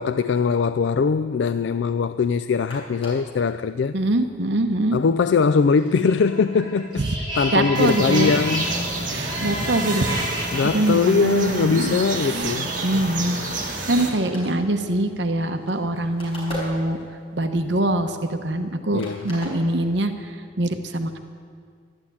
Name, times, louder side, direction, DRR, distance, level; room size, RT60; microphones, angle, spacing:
voice 1, 0.0-3.9 4.9-7.0 7.4-8.7 10.5-12.7 18.9-19.3, left 5 dB, 70° left, 12 dB, 0.3 m, -21 dB
sound 1, 2.4-2.5 2.7-3.4 4.0-4.2 4.5-6.9 7.3-7.5 7.8-7.9 8.1-8.9 9.5-9.6 9.9-10.2 10.5-10.9 11.2-13.4 13.8-13.9 14.0-17.2 17.7-18.7 18.9-20.1, equal, 30° left, 5.0 m, -41 dB
voice 2, 3.9-5.0 7.5-8.3 9.1-12.6 12.8-13.4 13.9-17.0 17.3-21.2, right 1 dB, 70° right, 7 dB, 0.9 m, -24 dB
sound 2, 6.0-10.7, equal, 25° right, 5.0 m, -30 dB
sound 3, 7.7-14.1, right 2 dB, 45° right, 2.0 m, -29 dB
13.0 x 11.5 x 8.6 m, 2.1 s
head